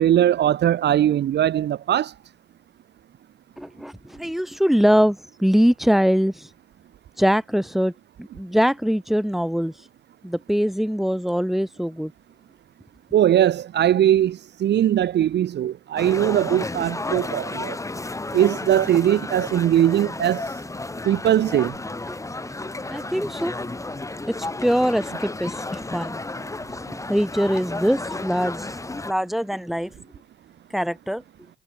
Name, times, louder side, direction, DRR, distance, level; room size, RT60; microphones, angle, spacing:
voice 1, 0.0-2.1 13.1-17.8 18.3-20.4 21.0-21.7, right 11 dB, 60° right, 0.8 m, -20 dB
voice 2, 3.6-6.5 7.2-7.9 8.2-9.7 10.2-12.1 22.1-22.2 22.9-23.8 24.3-26.2 26.7-26.8 27.1-28.8 29.0-29.9 30.7-31.2, equal, ahead, 3.8 m, -22 dB
sound 1, 16.0-29.1, left 2 dB, 15° left, 2.2 m, -32 dB
cardioid pair, 90°, 20 cm